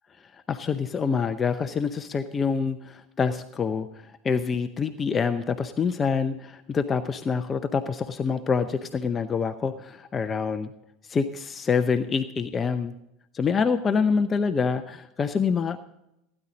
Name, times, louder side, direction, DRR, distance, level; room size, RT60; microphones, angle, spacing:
voice 1, 0.5-10.7 11.1-12.9 13.3-15.8, left 5 dB, 25° left, 10 dB, 0.7 m, -26 dB
16.5 x 10.0 x 4.1 m, 0.85 s
figure-of-eight pair, 75°, 0 cm